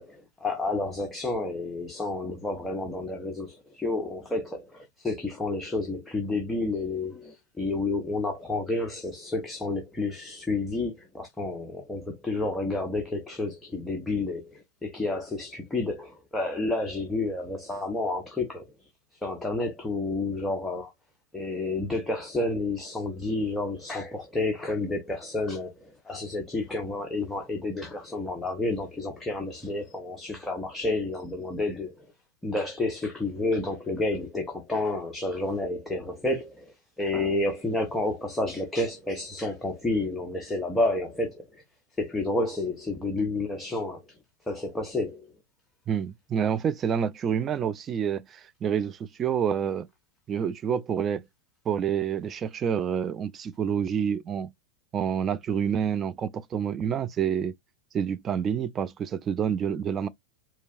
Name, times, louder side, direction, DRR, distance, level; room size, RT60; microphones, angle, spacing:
voice 1, 0.0-18.6 19.2-20.9 21.3-31.9 32.4-41.6 42.0-44.0 44.5-45.2, left 2 dB, 10° left, 0.9 m, -30 dB
voice 2, 45.9-49.9 50.3-51.2 51.7-54.5 54.9-57.5 57.9-60.1, right 8 dB, 25° right, 0.4 m, -28 dB
4.5 x 2.8 x 2.4 m
figure-of-eight pair, 90°, 0 cm